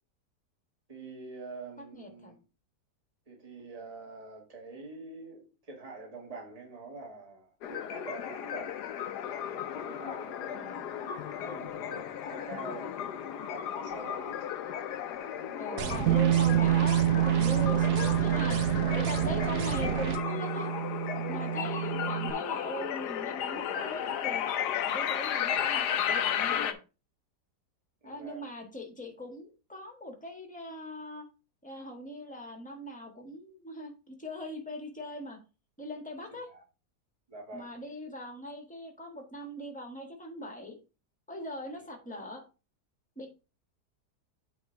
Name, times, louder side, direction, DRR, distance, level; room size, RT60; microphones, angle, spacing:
voice 1, 0.9-2.4 3.3-8.8 9.6-14.4 14.8-15.9 28.0-28.5 36.5-36.6 37.3-37.7 41.8-41.9, right 3 dB, 20° right, 1.8 m, -46 dB
voice 2, 1.9-2.3 10.5-10.9 15.6-20.7 21.3-24.5 24.8-26.8 28.0-31.2 31.6-35.4 35.8-36.5 37.5-40.8 41.3-42.4 43.2-43.3, left 1 dB, 5° left, 1.4 m, -41 dB
sound 1, 7.6-26.7, left 9 dB, 75° left, 1.3 m, -34 dB
sound 2, 15.8-20.2, right 7 dB, 85° right, 1.5 m, -33 dB
Bass guitar, 16.1-22.3, right 12 dB, 65° right, 0.8 m, -28 dB
8.6 x 3.6 x 4.5 m
omnidirectional pair, 1.8 m